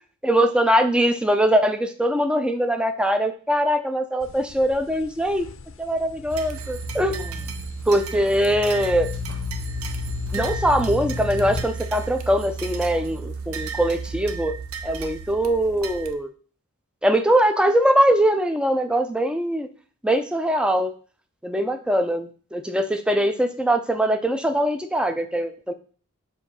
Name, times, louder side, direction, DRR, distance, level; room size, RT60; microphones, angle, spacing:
voice 1, 0.2-5.5 5.8-7.3 7.9-9.1 10.3-14.5 14.8-16.3 17.0-19.7 20.0-20.9 21.4-25.7, equal, 5° right, 7 dB, 0.4 m, -22 dB
sound 1, 4.2-11.6, left 6 dB, 60° left, 0.5 m, -34 dB
sound 2, 6.3-16.1, right 5 dB, 75° right, 0.6 m, -33 dB
6.8 x 2.7 x 5.4 m, 0.41 s
head